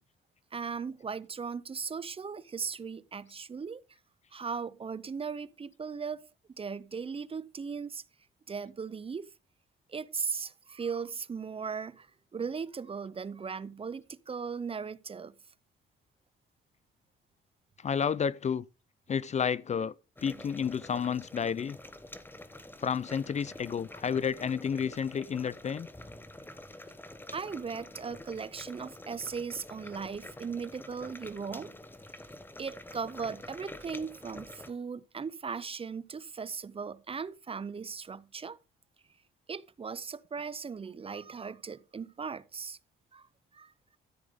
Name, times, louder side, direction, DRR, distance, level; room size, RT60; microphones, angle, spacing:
voice 1, 0.5-3.8 4.3-6.3 6.6-8.0 8.5-9.3 9.9-15.3 20.3-20.5 27.3-31.7 32.6-38.6 39.5-42.8 43.1-43.3 43.5-44.0, right 5 dB, 30° right, 0.5 m, -38 dB
voice 2, 17.8-18.6 19.1-19.9 20.2-21.8 22.8-25.9, left 7 dB, 35° left, 0.4 m, -31 dB
sound 1, 20.1-34.7, left 1 dB, 10° left, 1.0 m, -48 dB
13.5 x 7.8 x 3.6 m
cardioid pair, 90°, 20 cm